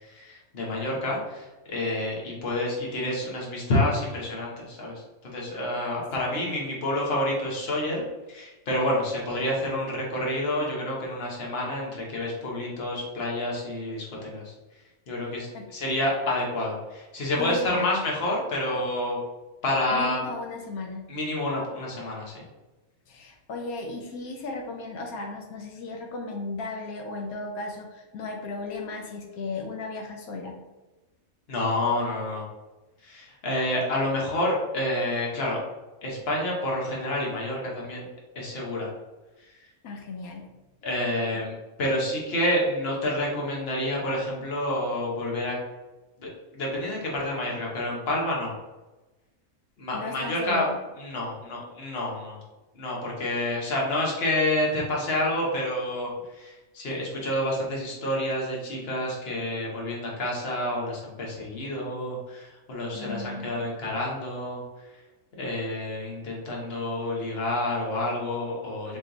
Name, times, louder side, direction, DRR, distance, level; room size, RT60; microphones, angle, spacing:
voice 1, 0.1-8.0 8.3-14.4 15.1-19.2 19.6-20.2 21.1-22.4 31.5-32.4 33.0-35.6 36.0-38.0 38.3-38.9 40.8-45.6 46.2-48.5 49.8-50.6 51.0-52.4 52.7-56.1 56.4-64.6 65.4-69.0, left 1 dB, 50° left, -3 dB, 1.3 m, -28 dB
voice 2, 17.4-18.0 19.9-21.1 23.1-30.6 39.8-40.5 41.3-41.4 49.9-50.8 62.9-63.9, left 3 dB, 85° left, 2 dB, 1.1 m, -36 dB
3.9 x 3.2 x 3.9 m, 1.1 s
omnidirectional pair, 1.5 m